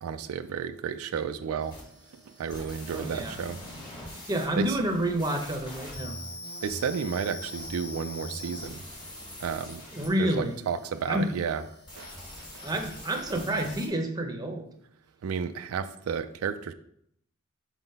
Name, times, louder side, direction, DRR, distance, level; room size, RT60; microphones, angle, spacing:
voice 1, 0.0-1.8 2.4-3.6 4.6-4.7 6.6-8.8 9.4-11.6 12.0-12.1 15.2-16.7, right 6 dB, 85° right, 10 dB, 0.4 m, -32 dB
sound 1, 1.6-13.9, left 1 dB, 20° left, 1.5 m, -43 dB
voice 2, 2.9-3.4 4.3-6.2 9.9-10.6 11.1-11.3 12.6-14.7, right 1 dB, 20° right, 4 dB, 0.7 m, -29 dB
4.9 x 4.0 x 5.2 m, 0.71 s
head